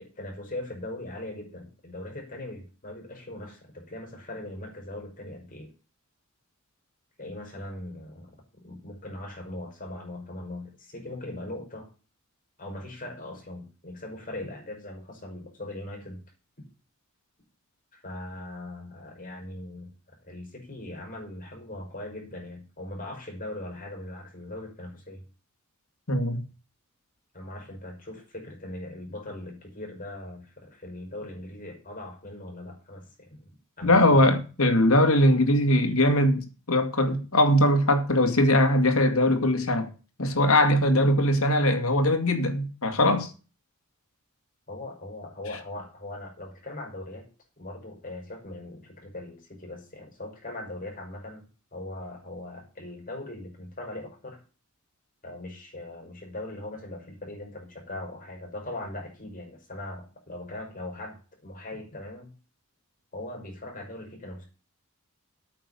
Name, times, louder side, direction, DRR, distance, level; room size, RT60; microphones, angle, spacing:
voice 1, 0.0-5.7 7.2-8.3 8.6-11.9 12.6-16.2 17.9-19.9 20.2-25.2 27.3-33.5 33.8-34.2 44.7-47.3 47.6-51.5 51.7-54.4 55.2-62.3 63.1-64.4, left 1 dB, 40° left, 5.5 m, -40 dB
voice 2, 26.1-26.4 33.8-39.9 40.2-43.3, left 1 dB, 80° left, 2.3 m, -21 dB
8.8 x 7.0 x 8.4 m
head